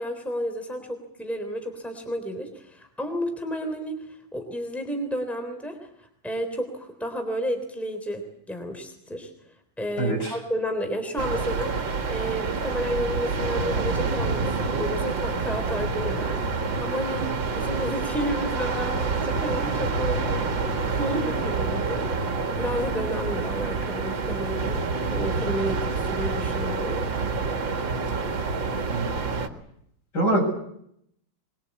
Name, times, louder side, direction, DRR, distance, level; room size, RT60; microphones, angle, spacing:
voice 1, 0.0-4.0 4.3-9.3 9.8-17.2 17.5-20.5 20.9-24.8 25.1-27.1, equal, ahead, 5 dB, 3.7 m, -31 dB
voice 2, 10.0-10.4 17.2-17.3 28.9-29.1 30.1-30.4, right 2 dB, 65° left, 2 dB, 8.5 m, -24 dB
sound 1, 11.2-29.5, right 4 dB, 80° right, 2.5 m, -27 dB
23.5 x 22.0 x 8.5 m, 0.73 s
omnidirectional pair, 2.0 m